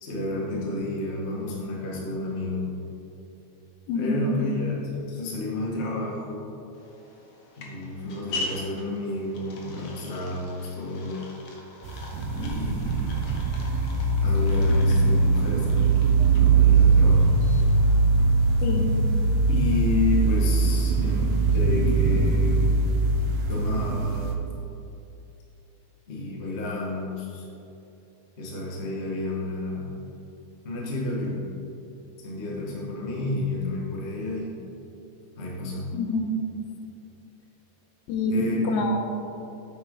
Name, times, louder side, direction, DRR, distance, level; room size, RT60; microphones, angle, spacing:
voice 1, 0.0-2.7 3.9-6.4 7.6-11.2 12.3-13.2 14.2-16.0 16.4-17.3 19.5-22.7 23.5-24.3 26.1-27.4 28.4-29.9 30.6-31.4 32.2-34.5 35.4-35.9 38.3-38.6, left 2 dB, 40° left, -4 dB, 0.9 m, -30 dB
voice 2, 3.9-4.4 18.6-18.9 35.9-36.4 38.1-39.0, left 1 dB, 90° left, 2 dB, 2.8 m, -26 dB
sound 1, 6.7-18.0, left 2 dB, 60° left, 1.7 m, -42 dB
sound 2, 11.8-24.4, right 3 dB, 75° right, 1.9 m, -21 dB
9.1 x 8.7 x 3.9 m, 2.8 s
omnidirectional pair, 4.2 m